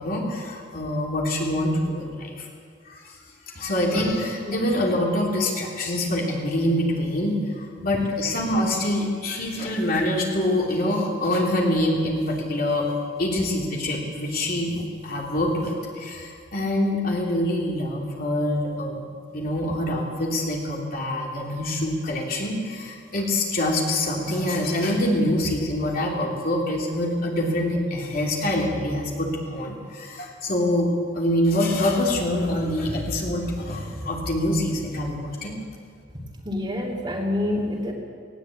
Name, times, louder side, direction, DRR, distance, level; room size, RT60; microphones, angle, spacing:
voice 1, 0.0-2.5 2.8-3.2 3.5-12.9 13.2-19.0 19.3-35.5, left 1 dB, 50° left, -2 dB, 3.2 m, -25 dB
voice 2, 4.5-4.8 36.1-37.9, left 1 dB, 25° right, -2 dB, 2.8 m, -28 dB
18.5 x 17.5 x 8.5 m, 2.1 s
head